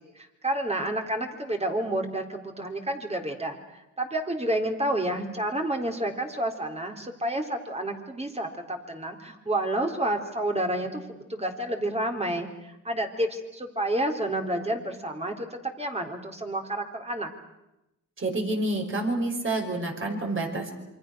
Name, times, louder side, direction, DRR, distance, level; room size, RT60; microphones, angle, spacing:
voice 1, 0.0-17.3, right 1 dB, 20° right, 3 dB, 3.9 m, -30 dB
voice 2, 18.2-20.7, right 2 dB, 40° right, 2 dB, 6.0 m, -28 dB
28.0 x 24.5 x 6.4 m, 0.91 s
cardioid pair, 80°, 33 cm